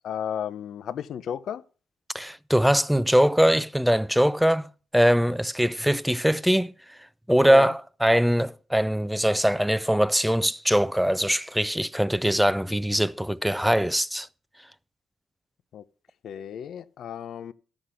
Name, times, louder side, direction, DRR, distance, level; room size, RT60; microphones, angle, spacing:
voice 1, 0.0-1.6 7.5-7.7 15.7-15.8 16.2-17.5, left 9 dB, 65° left, 0.6 m, -33 dB
voice 2, 2.1-4.7 4.9-6.7 7.3-14.3, equal, ahead, 0.5 m, -22 dB
13.0 x 6.5 x 5.7 m
cardioid pair, 90°, 0 cm